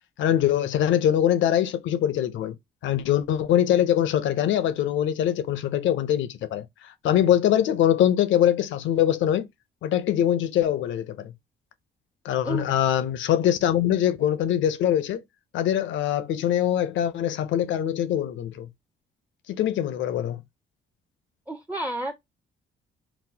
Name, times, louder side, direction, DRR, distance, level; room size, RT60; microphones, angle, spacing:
voice 1, 0.2-2.6 2.8-9.5 9.8-11.3 12.2-15.2 15.5-18.7 19.5-20.4, left 11 dB, 75° left, 0.5 m, -23 dB
voice 2, 21.5-22.1, right 1 dB, 5° right, 0.4 m, -30 dB
3.9 x 2.1 x 2.8 m
cardioid pair, 90°, 20 cm